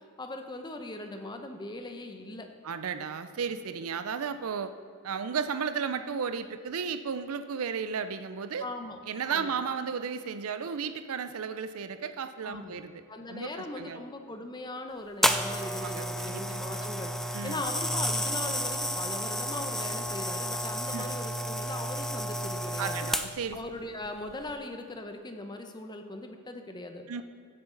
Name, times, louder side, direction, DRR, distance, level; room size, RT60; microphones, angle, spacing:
voice 1, 0.2-2.5 8.6-9.0 9.3-9.5 12.4-12.8 13.1-17.1 17.4-23.1 23.5-27.2, left 2 dB, 20° left, 5 dB, 0.8 m, -39 dB
voice 2, 2.6-4.7 5.0-8.6 9.1-13.0 13.3-14.0 15.6-16.6 17.3-17.6 20.9-21.2 22.8-23.6 27.1-27.2, right 6 dB, 70° right, 11 dB, 0.5 m, -34 dB
sound 1, 15.2-23.5 24.3-24.5, equal, ahead, 0.3 m, -31 dB
16.5 x 7.8 x 3.9 m, 2.2 s
head